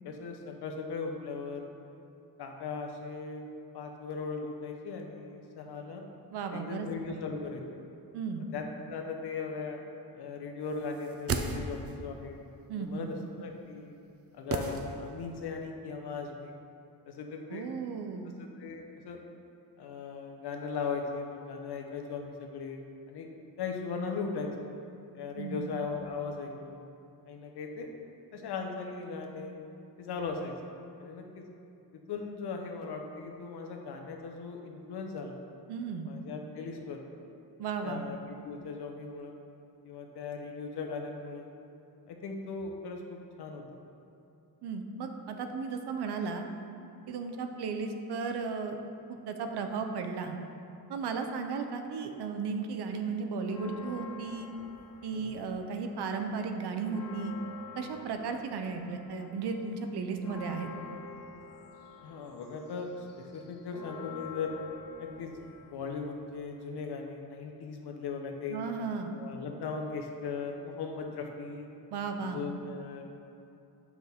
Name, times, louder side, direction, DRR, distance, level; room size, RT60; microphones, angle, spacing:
voice 1, 0.0-1.7 2.4-3.4 3.7-6.0 6.5-7.6 8.5-9.8 10.1-12.3 12.8-13.9 14.3-16.5 17.1-17.6 18.4-19.2 19.8-22.8 23.1-23.3 23.6-24.5 25.1-26.8 27.3-27.9 28.3-29.6 30.0-30.6 31.0-31.4 32.1-35.4 36.1-37.0 37.8-38.2 38.4-39.3 39.8-41.5 42.1-43.6 55.1-55.3 62.0-64.6 65.0-65.3 65.6-68.6 69.1-71.7 72.2-73.0, left 5 dB, 75° left, 3 dB, 1.0 m, -38 dB
voice 2, 6.3-7.3 8.1-8.5 12.7-13.1 17.5-18.3 25.4-25.6 35.7-36.1 37.6-38.0 44.6-46.4 47.1-48.8 49.3-50.4 50.9-54.5 55.0-57.4 57.8-60.7 68.5-69.1 71.9-72.4, right 5 dB, 75° right, 5 dB, 0.8 m, -35 dB
sound 1, 10.9-12.1 14.5-15.4 15.7-15.8, right 4 dB, 35° right, 0.5 m, -34 dB
sound 2, 53.4-55.8 56.1-66.6, left 4 dB, 55° left, 1.4 m, -48 dB
7.9 x 6.1 x 3.6 m, 2.7 s
cardioid pair, 105°, 40 cm